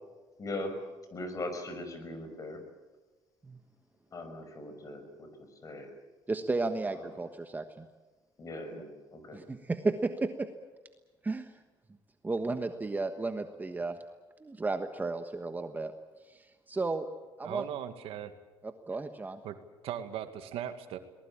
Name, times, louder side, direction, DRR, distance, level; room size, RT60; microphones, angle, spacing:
voice 1, 0.4-0.8 1.1-2.6 4.1-5.9 6.9-7.1 8.4-9.4, left 1 dB, 35° left, 8 dB, 5.8 m, -40 dB
voice 2, 6.3-7.8 8.7-8.8 9.3-10.3 11.2-11.6 12.2-14.0 14.4-15.9 16.3-17.1 17.4-17.6 18.6-19.4, right 3 dB, 20° right, 7 dB, 1.3 m, -33 dB
voice 3, 17.4-18.3 19.4-19.6 19.8-21.0, right 10 dB, 75° right, 8 dB, 2.1 m, -38 dB
22.5 x 20.0 x 8.7 m, 1.2 s
cardioid pair, 115°, 10 cm